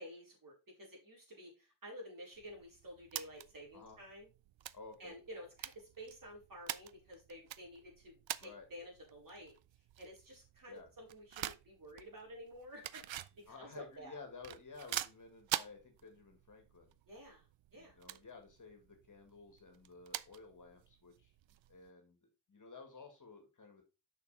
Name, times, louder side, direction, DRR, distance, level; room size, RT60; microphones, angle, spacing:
voice 1, 0.0-4.3 5.0-9.5 10.0-14.2 17.1-17.5 17.7-18.0, equal, 45° right, -2 dB, 4.4 m, -52 dB
sound 1, 2.3-21.9, right 12 dB, 80° right, 0.6 m, -47 dB
voice 2, 4.7-5.1 8.4-8.7 10.7-10.9 13.5-17.0 17.7-21.3 21.7-23.8, left 4 dB, 40° left, 4 dB, 2.0 m, -54 dB
6.8 x 6.2 x 4.1 m, 0.28 s
wide cardioid pair, 160°, 45 cm